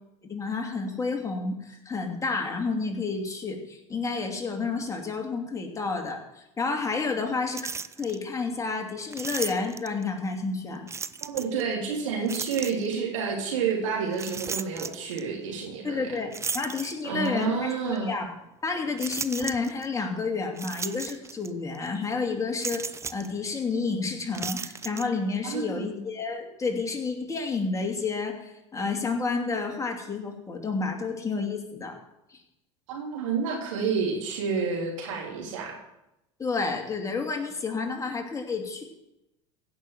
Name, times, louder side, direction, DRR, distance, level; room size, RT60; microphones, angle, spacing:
voice 1, 0.2-7.6 8.0-10.9 15.8-18.3 18.6-32.0 32.3-32.4 36.4-38.8, left 4 dB, 20° left, 2 dB, 2.6 m, -30 dB
sound 1, 7.5-8.2 9.1-10.0 10.9-11.6 12.3-13.0 14.1-15.2 16.3-17.4 17.9-18.0 19.0-19.9 20.6-21.5 21.7-21.9 22.6-23.3 24.3-25.1, right 5 dB, 15° right, 0.5 m, -35 dB
voice 2, 11.2-16.1 17.0-18.2 25.4-26.0 32.9-35.8, right 5 dB, 80° right, 0 dB, 3.3 m, -29 dB
15.5 x 6.3 x 7.4 m, 0.89 s
hypercardioid pair, 85°, 16 cm